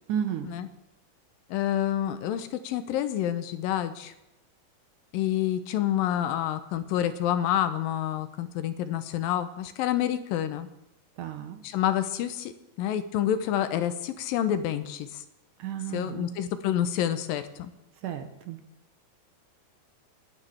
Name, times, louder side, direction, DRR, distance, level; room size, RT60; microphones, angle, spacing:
voice 1, 0.1-0.6 11.2-11.6 15.6-16.3 18.0-18.6, right 9 dB, 70° right, 7 dB, 2.4 m, -33 dB
voice 2, 1.5-4.1 5.1-10.7 11.6-12.5 12.8-15.2 15.9-17.7, left 11 dB, 85° left, 11 dB, 2.5 m, -28 dB
27.0 x 9.8 x 3.4 m, 0.89 s
omnidirectional pair, 4.1 m